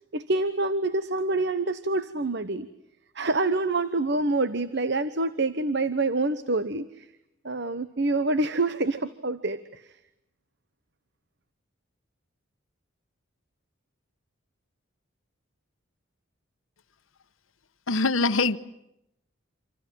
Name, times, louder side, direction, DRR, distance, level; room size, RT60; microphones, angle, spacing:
voice 1, 0.1-2.7 3.1-7.1 7.4-9.9, right 2 dB, 55° right, 13 dB, 1.1 m, -26 dB
voice 2, 17.9-18.6, left 3 dB, 75° left, 13 dB, 1.1 m, -23 dB
28.0 x 27.5 x 7.7 m, 0.82 s
head